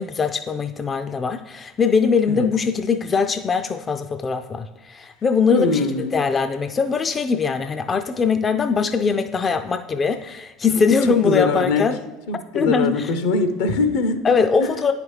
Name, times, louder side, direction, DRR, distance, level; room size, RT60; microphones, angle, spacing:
voice 1, 0.0-5.9 6.1-12.0 12.3-13.1 14.2-14.9, left 5 dB, 30° left, 9 dB, 0.3 m, -21 dB
voice 2, 5.5-6.1 11.2-11.9 12.3-14.2 14.6-14.7, left 4 dB, 70° left, 9 dB, 0.7 m, -22 dB
9.3 x 4.9 x 3.3 m, 1.1 s
hypercardioid pair, 75°, 0 cm